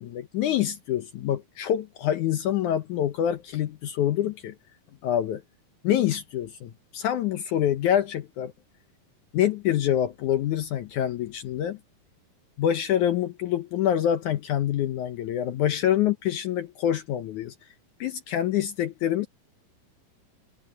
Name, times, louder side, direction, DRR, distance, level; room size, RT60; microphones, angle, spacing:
voice 1, 0.0-4.5 5.0-5.4 5.8-8.5 9.3-11.8 12.6-17.5 18.0-19.3, left 10 dB, 70° left, 2.0 m, -26 dB
omnidirectional pair, 4.3 m